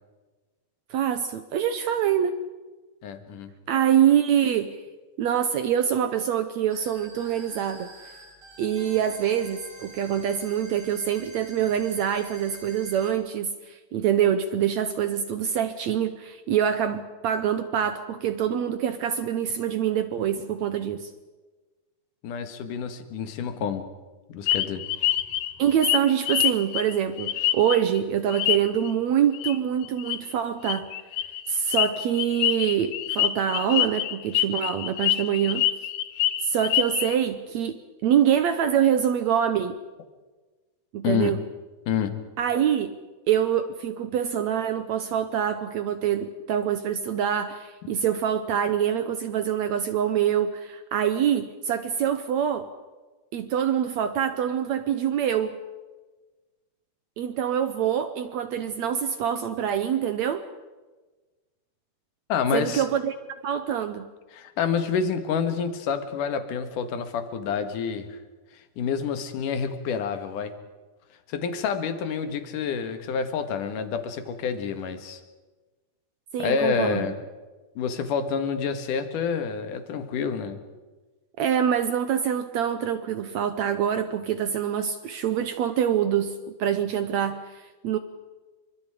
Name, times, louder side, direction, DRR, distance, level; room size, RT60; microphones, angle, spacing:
voice 1, 0.9-2.4 3.7-4.8 5.2-7.9 8.6-21.1 25.6-30.9 31.5-35.7 36.4-39.8 40.9-41.4 42.4-43.0 43.3-52.7 53.3-55.6 57.2-60.4 62.5-63.1 63.4-64.1 76.3-77.1 81.4-88.0, right 9 dB, 80° right, 10 dB, 1.6 m, -25 dB
voice 2, 3.0-3.5 22.2-23.9 24.3-24.9 41.0-41.3 41.9-42.2 62.3-62.8 64.3-68.2 68.5-70.5 71.3-75.2 76.4-77.2 77.8-80.6, left 6 dB, 60° left, 8 dB, 3.0 m, -28 dB
sound 1, 6.7-13.1, right 2 dB, 35° right, 5.0 m, -47 dB
sound 2, 24.5-28.0 28.3-28.9 29.3-29.6 29.8-30.2 30.6-37.1, left 13 dB, 85° left, 1.6 m, -26 dB
29.0 x 25.5 x 5.0 m, 1.3 s
omnidirectional pair, 4.5 m